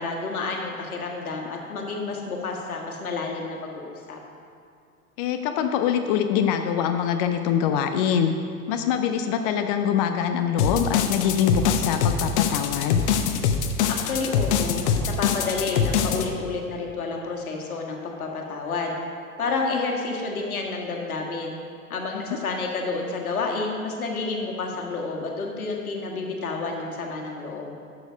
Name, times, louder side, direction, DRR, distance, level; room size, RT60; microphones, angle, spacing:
voice 1, 0.0-4.2 13.9-18.9 19.4-21.6 21.9-27.7, left 3 dB, 65° left, 1 dB, 1.8 m, -30 dB
voice 2, 5.2-8.3 8.7-13.0 22.1-22.2, left 8 dB, 25° left, 7 dB, 0.4 m, -24 dB
sound 1, 10.6-16.3, left 7 dB, 45° left, 0.9 m, -23 dB
12.5 x 6.6 x 5.2 m, 2.4 s
figure-of-eight pair, 90°, 46 cm